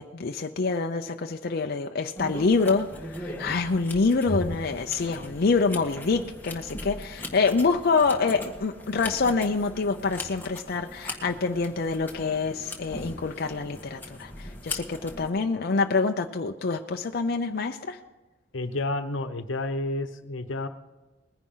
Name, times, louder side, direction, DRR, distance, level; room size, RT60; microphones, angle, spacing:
voice 1, 0.0-18.0, left 4 dB, 55° left, 5 dB, 0.6 m, -26 dB
sound 1, 2.2-15.3, left 1 dB, 10° left, 1.6 m, -39 dB
voice 2, 18.5-20.7, left 2 dB, 85° left, 9 dB, 1.0 m, -30 dB
20.5 x 10.5 x 3.8 m, 1.2 s
head